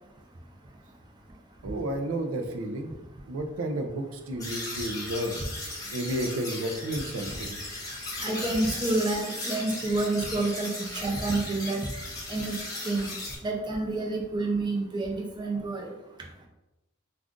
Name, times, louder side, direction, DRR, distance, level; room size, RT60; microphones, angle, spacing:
voice 1, 1.6-2.9 3.3-5.3 5.9-7.6, right 1 dB, 85° right, 5 dB, 0.4 m, -31 dB
sound 1, 4.4-13.4, left 2 dB, 20° left, 0.8 m, -37 dB
voice 2, 8.2-11.9 12.3-12.6 12.8-13.1 13.4-15.9, right 2 dB, 20° right, 0 dB, 0.4 m, -28 dB
2.5 x 2.3 x 3.5 m, 0.98 s
head